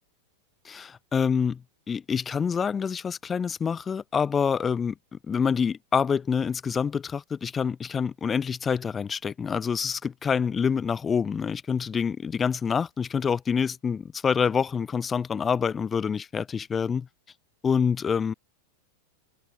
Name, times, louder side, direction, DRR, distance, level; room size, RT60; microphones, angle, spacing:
voice 1, 0.6-4.9 5.3-17.1 17.6-18.3, left 6 dB, 20° left, 4.5 m, -26 dB
figure-of-eight pair, 90°, 0 cm